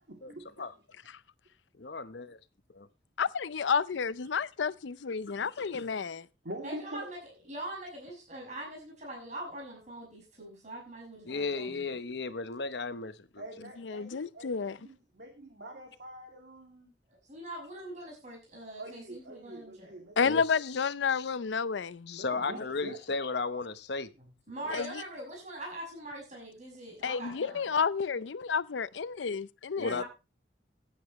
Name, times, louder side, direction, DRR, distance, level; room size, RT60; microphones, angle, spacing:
voice 1, 0.1-0.7 6.4-7.0 13.4-16.9 18.8-20.2 22.1-23.0, right 1 dB, 70° right, 2.7 m, -45 dB
voice 2, 1.8-2.4 2.7-2.9 5.4-5.9 11.3-13.4 20.2-20.4 21.1-21.4 22.1-24.1 24.7-24.9 29.8-30.0, left 4 dB, 65° left, 0.9 m, -35 dB
voice 3, 3.2-6.3 13.8-14.8 20.2-22.2 24.7-25.0 27.0-30.0, left 6 dB, 90° left, 0.5 m, -31 dB
voice 4, 6.6-12.0 17.3-19.9 24.5-27.6 29.8-30.1, right 1 dB, 40° right, 6.0 m, -43 dB
15.5 x 10.0 x 3.1 m
head